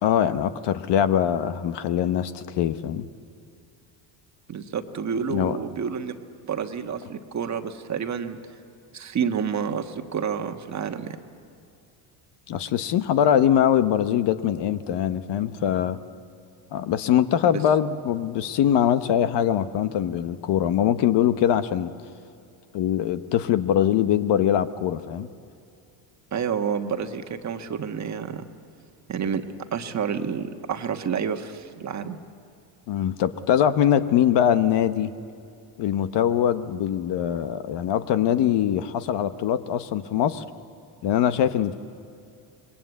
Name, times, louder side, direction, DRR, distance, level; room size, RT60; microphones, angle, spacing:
voice 1, 0.0-3.1 5.3-5.6 12.5-16.0 16.7-21.9 22.7-25.3 32.9-35.1 35.8-40.4 41.0-41.7, left 10 dB, 55° left, 11 dB, 1.1 m, -22 dB
voice 2, 4.5-6.2 6.5-8.4 8.9-11.2 17.5-17.6 26.3-28.4 29.1-29.4 29.7-32.2, right 7 dB, 35° right, 6 dB, 1.4 m, -29 dB
27.0 x 22.0 x 8.3 m, 2.5 s
cardioid pair, 125°, 50 cm